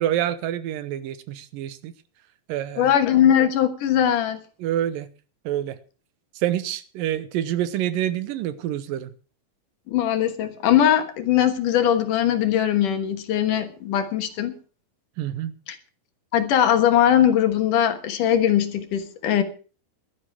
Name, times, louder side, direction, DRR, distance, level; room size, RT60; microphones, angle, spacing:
voice 1, 0.0-1.9 2.5-2.9 4.6-5.1 5.5-5.8 6.4-9.1 15.2-15.5, right 11 dB, 80° right, 2.5 m, -27 dB
voice 2, 2.8-4.4 9.9-14.5 15.7-15.8 16.3-19.4, left 10 dB, 70° left, 2.8 m, -20 dB
16.0 x 12.5 x 4.7 m
omnidirectional pair, 4.1 m